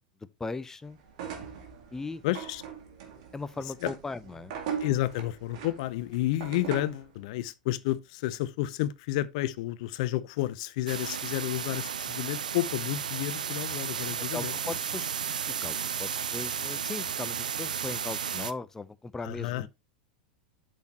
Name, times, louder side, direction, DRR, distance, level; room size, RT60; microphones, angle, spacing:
voice 1, 0.4-1.0 1.9-2.2 3.3-4.5 14.3-15.1 15.5-19.7, left 3 dB, 10° left, 0.5 m, -38 dB
sound 1, 1.1-7.1, right 7 dB, 60° right, 2.2 m, -40 dB
voice 2, 2.2-2.6 3.8-3.9 4.8-14.5 19.2-19.7, left 15 dB, 55° left, 0.6 m, -31 dB
sound 2, 10.9-18.5, right 8 dB, 80° right, 0.5 m, -33 dB
8.2 x 6.4 x 2.9 m
hypercardioid pair, 95°, 4 cm